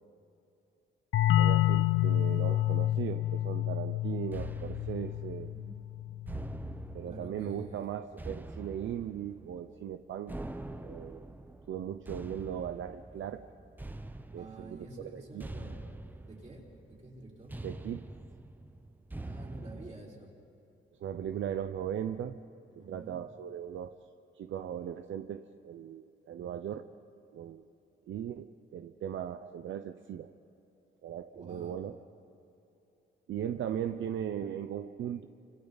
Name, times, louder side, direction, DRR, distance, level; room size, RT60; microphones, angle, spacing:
sound 1, 1.1-6.6, left 13 dB, 70° left, 0.5 m, -29 dB
voice 1, 1.4-5.5 6.9-10.4 10.8-11.3 11.7-13.5 14.3-14.9 15.1-15.5 17.6-18.0 21.0-22.4 22.7-24.0 24.4-26.9 27.3-27.7 28.1-30.3 31.0-32.0 33.3-35.3, right 9 dB, 65° right, 8 dB, 0.7 m, -38 dB
sound 2, 4.3-19.9, right 2 dB, 10° right, 0.7 m, -45 dB
voice 2, 5.4-5.8 7.0-7.9 14.4-15.8 16.2-17.5 19.2-20.3 21.2-21.4 22.7-23.2 31.3-31.8, right 2 dB, 35° right, -3 dB, 4.7 m, -49 dB
29.5 x 26.5 x 4.1 m, 2.9 s
cardioid pair, 140°, 21 cm